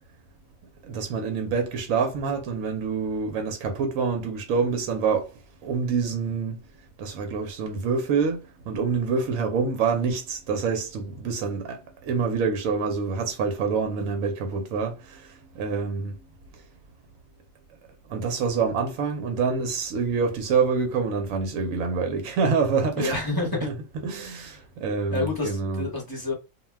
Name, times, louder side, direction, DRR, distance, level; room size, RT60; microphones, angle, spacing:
voice 1, 0.8-5.3 5.6-6.6 7.0-16.1 18.1-23.2 23.5-23.8 24.0-25.9, right 5 dB, 80° right, 1.0 m, -26 dB
voice 2, 22.9-23.7 24.3-24.5 25.1-26.3, left 2 dB, 20° left, 0.8 m, -29 dB
2.4 x 2.2 x 3.2 m
omnidirectional pair, 1.4 m